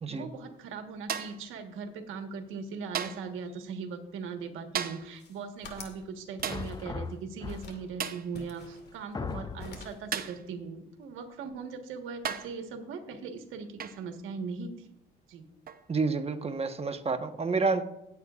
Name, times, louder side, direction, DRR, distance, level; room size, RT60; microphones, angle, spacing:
voice 1, 0.1-14.9 15.3-15.5, right 5 dB, 90° right, 5 dB, 1.4 m, -39 dB
Metal surface hit, 1.1-1.5 2.9-3.3 4.7-5.2 6.4-6.8 8.0-8.3 10.1-10.5 11.5-11.6 12.2-12.6 13.8-14.1 15.7-15.9, right 8 dB, 50° right, 0.8 m, -35 dB
sound 1, 5.0-6.0 6.4-7.1 7.4-7.9 8.3-9.3 9.6-10.1, left 3 dB, 55° left, 2.3 m, -48 dB
sound 2, 6.5-8.0 8.6-8.7 9.1-10.0, left 5 dB, 20° left, 0.5 m, -38 dB
voice 2, 15.9-17.8, right 4 dB, 30° right, 7 dB, 1.2 m, -29 dB
18.0 x 8.4 x 2.4 m, 0.85 s
cardioid pair, 90°, 20 cm